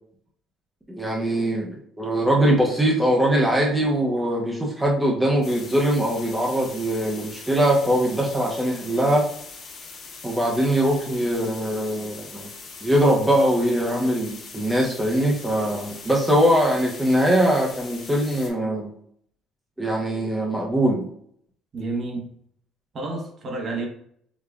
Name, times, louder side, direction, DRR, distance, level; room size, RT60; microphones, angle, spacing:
voice 1, 0.9-9.3 10.2-12.5 12.8-18.9 19.8-21.1, right 1 dB, 10° right, -2 dB, 0.6 m, -22 dB
sound 1, 5.4-18.5, left 4 dB, 45° left, 1.3 m, -41 dB
voice 2, 21.7-22.3 22.9-23.9, right 3 dB, 40° right, 1 dB, 0.9 m, -30 dB
5.0 x 2.2 x 2.4 m, 0.64 s
cardioid pair, 125°, 0 cm